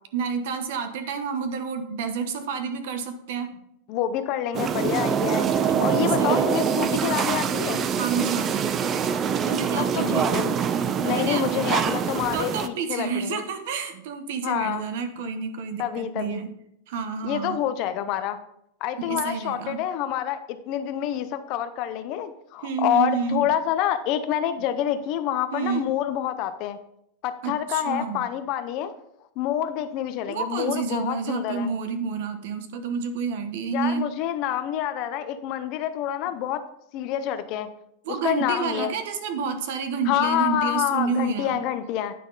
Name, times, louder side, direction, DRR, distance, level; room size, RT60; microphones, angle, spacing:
voice 1, 0.1-3.6 5.7-6.5 7.9-8.7 9.4-10.4 11.0-11.7 12.3-16.5 16.9-17.6 19.0-19.8 22.6-23.4 25.5-25.9 27.4-28.2 30.3-34.1 38.0-41.6, right 5 dB, 55° right, 8 dB, 1.0 m, -29 dB
voice 2, 3.9-7.9 9.8-10.5 11.0-13.4 14.4-14.9 15.8-16.4 17.2-18.4 18.8-26.8 27.2-28.9 29.4-31.7 33.7-36.6 36.9-37.7 38.1-38.9 40.1-42.1, left 10 dB, 35° left, 10 dB, 0.6 m, -27 dB
sound 1, 4.5-12.7, right 7 dB, 20° right, 0.4 m, -24 dB
9.2 x 6.0 x 3.9 m, 0.77 s
supercardioid pair, 175°, 0 cm